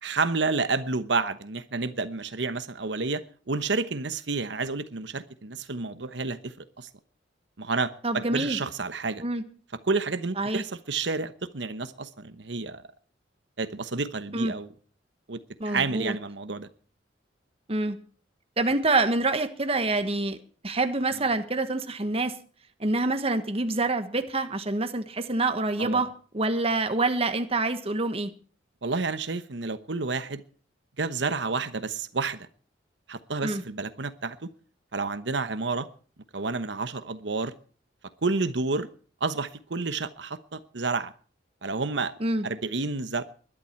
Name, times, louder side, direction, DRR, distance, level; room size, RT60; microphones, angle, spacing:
voice 1, 0.0-3.2 3.5-6.9 7.6-9.2 9.8-12.8 13.6-14.7 15.3-15.4 15.6-16.7 25.8-26.1 28.8-30.4 31.0-32.5 33.1-34.5 34.9-35.9 36.3-37.5 38.2-38.9 39.2-41.1 41.6-42.1 42.4-43.2, right 4 dB, 70° right, 1.1 m, -30 dB
voice 2, 8.0-8.6 9.2-9.4 10.4-10.6 14.3-14.5 15.6-16.1 17.7-18.0 18.6-20.4 20.6-22.3 22.8-26.1 26.3-28.3 33.4-33.6 42.2-42.5, right 2 dB, 35° right, 1.4 m, -26 dB
21.5 x 11.5 x 4.5 m
head